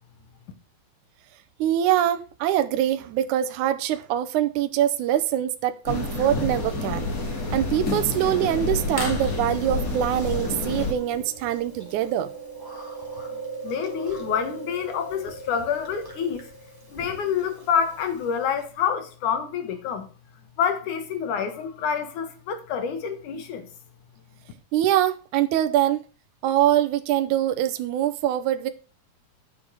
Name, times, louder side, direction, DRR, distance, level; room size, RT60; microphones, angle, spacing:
voice 1, 1.6-7.1 7.5-12.3 24.7-26.0 26.4-28.7, right 12 dB, 75° right, 2.1 m, -23 dB
sound 1, 5.9-10.9, left 2 dB, 30° left, 2.1 m, -28 dB
Chewing mastication, 9.7-18.6, right 3 dB, 5° right, 2.8 m, -40 dB
voice 2, 13.6-16.5 16.9-20.1 20.6-23.7, left 7 dB, 75° left, 2.9 m, -27 dB
10.0 x 6.3 x 6.2 m
omnidirectional pair, 3.7 m